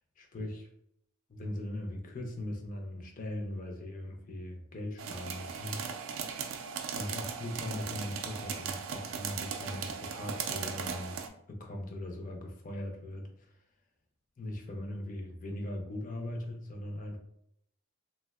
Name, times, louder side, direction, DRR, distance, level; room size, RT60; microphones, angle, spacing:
voice 1, 0.2-0.7 1.3-5.8 6.9-11.2 11.5-13.5 14.4-17.2, left 1 dB, 40° left, 2 dB, 0.4 m, -39 dB
sound 1, 5.0-11.3, right 6 dB, 70° right, 0.3 m, -38 dB
3.3 x 2.0 x 2.3 m, 0.73 s
head